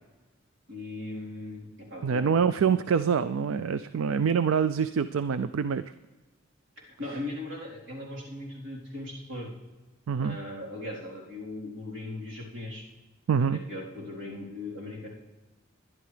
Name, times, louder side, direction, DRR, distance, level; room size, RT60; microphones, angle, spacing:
voice 1, 0.7-2.3 7.0-9.5 10.2-12.8 13.4-15.1, left 2 dB, 65° right, -5 dB, 3.9 m, -38 dB
voice 2, 2.0-5.8 10.1-10.4 13.3-13.6, right 6 dB, 85° right, 12 dB, 0.4 m, -25 dB
21.0 x 11.0 x 3.3 m, 1.2 s
head